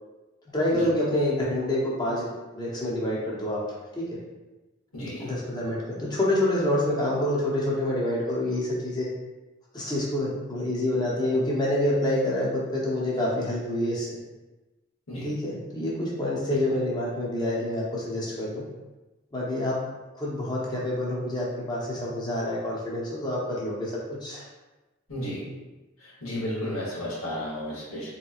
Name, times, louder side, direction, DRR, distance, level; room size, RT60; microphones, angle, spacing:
voice 1, 0.5-2.3 2.5-3.6 3.9-4.2 5.2-9.1 9.7-14.2 15.2-18.7 19.3-19.8 20.1-24.4, left 1 dB, 20° left, -5 dB, 0.7 m, -27 dB
voice 2, 4.9-5.3 15.1-15.3 16.5-16.6 25.1-25.5 26.0-28.1, equal, 75° left, -5 dB, 1.0 m, -33 dB
3.4 x 2.9 x 2.3 m, 1.1 s
head